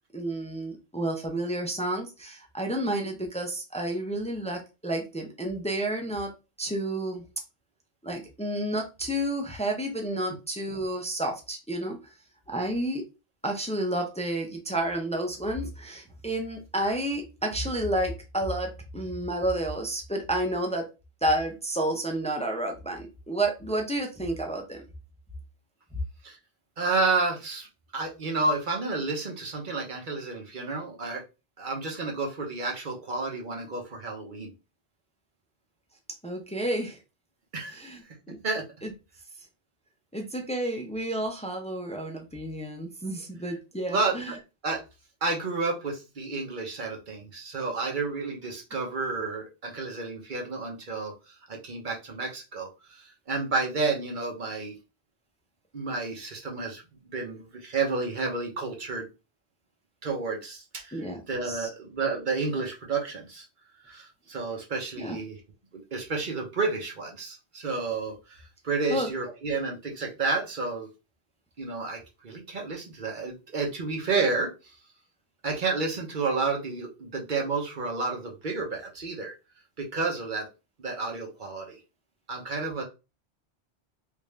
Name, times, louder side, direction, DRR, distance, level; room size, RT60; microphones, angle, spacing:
voice 1, 0.1-6.3 6.6-7.2 8.0-12.0 12.5-13.0 13.4-20.9 21.2-24.8 36.2-37.0 37.7-38.0 38.8-38.9 40.1-44.3 60.9-61.2 61.4-61.7 65.0-65.2 68.9-69.1, right 1 dB, 10° left, 3 dB, 0.4 m, -30 dB
voice 2, 26.8-27.7 27.9-31.2 31.6-34.5 37.5-38.2 38.4-38.7 43.9-44.4 44.6-44.8 45.2-54.7 55.7-59.1 60.0-61.0 61.3-63.4 63.9-65.4 65.7-70.9 71.6-74.5 75.4-79.3 79.8-80.5 80.8-81.8 82.3-82.8, right 3 dB, 50° right, 1 dB, 1.0 m, -31 dB
3.4 x 2.6 x 3.2 m, 0.28 s
omnidirectional pair, 1.1 m